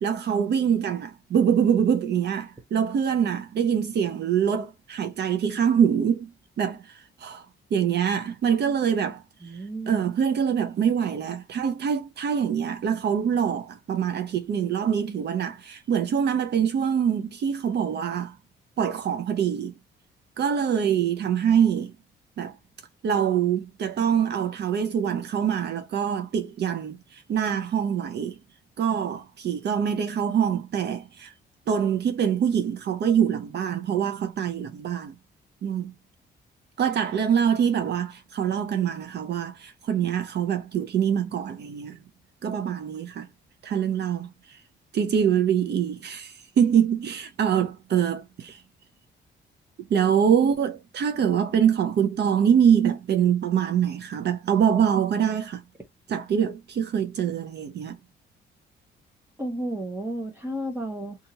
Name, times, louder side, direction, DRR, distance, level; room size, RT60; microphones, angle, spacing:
voice 1, 0.0-6.3 6.6-7.4 7.7-9.2 9.9-18.4 18.8-19.7 20.4-21.9 22.4-22.5 23.0-28.3 28.8-31.3 31.7-35.1 35.6-35.9 36.8-42.0 42.4-43.3 43.6-44.6 44.9-48.6 49.9-55.6 56.1-58.0, right 8 dB, 60° right, 0.6 m, -24 dB
voice 2, 9.4-10.0 51.5-51.6 59.4-61.2, right 1 dB, 10° right, 0.9 m, -32 dB
2.8 x 2.5 x 2.8 m
cardioid pair, 90°, 20 cm